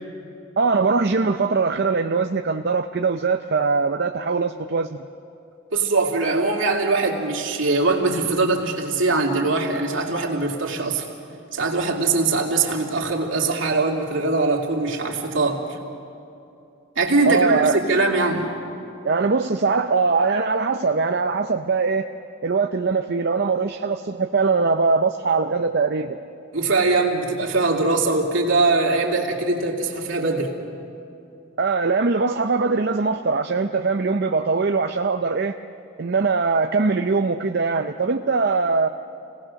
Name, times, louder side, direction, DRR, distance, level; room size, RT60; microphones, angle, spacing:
voice 1, 0.6-5.0 17.2-17.8 19.0-22.1 22.4-26.2 31.6-35.6 36.0-38.9, right 4 dB, 50° right, 5 dB, 0.6 m, -21 dB
voice 2, 5.7-11.1 11.5-15.8 17.0-18.5 26.5-30.6, right 3 dB, 70° right, -1 dB, 2.8 m, -22 dB
29.0 x 18.5 x 6.5 m, 2.7 s
head